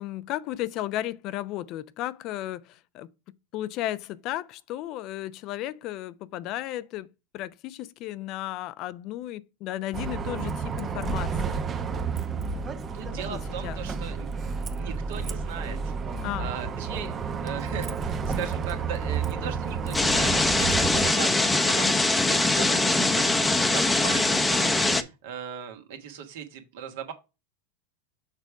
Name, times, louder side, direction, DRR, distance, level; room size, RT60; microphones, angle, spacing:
voice 1, 0.0-3.1 3.5-7.1 7.3-11.6 13.1-13.8 16.2-16.5 21.7-21.9, left 14 dB, 50° left, 0.5 m, -34 dB
Bus, 9.9-21.1, right 5 dB, 30° right, 0.7 m, -31 dB
voice 2, 12.9-25.0 25.2-27.1, right 7 dB, 65° right, 1.6 m, -38 dB
sound 1, 19.9-25.0, left 2 dB, 10° left, 0.7 m, -22 dB
6.7 x 3.5 x 4.6 m
hypercardioid pair, 95°, 0 cm